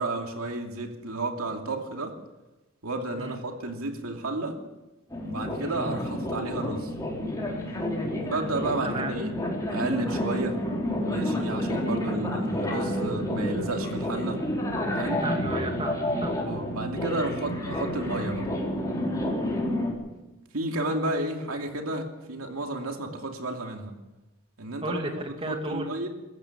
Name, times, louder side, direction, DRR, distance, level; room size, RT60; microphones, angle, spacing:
voice 1, 0.0-2.2 2.8-4.6 5.2-6.9 8.2-9.3 9.7-10.6 11.1-14.4 14.9-15.2 16.5-18.5 20.5-23.9 24.6-25.2 25.5-26.1, right 2 dB, 80° right, 3 dB, 2.7 m, -32 dB
sound 1, 5.1-19.9, left 1 dB, 15° left, 4.4 m, -29 dB
voice 2, 15.2-16.3 24.8-25.9, right 2 dB, 25° right, 3 dB, 2.4 m, -33 dB
24.5 x 14.5 x 7.5 m, 1.0 s
head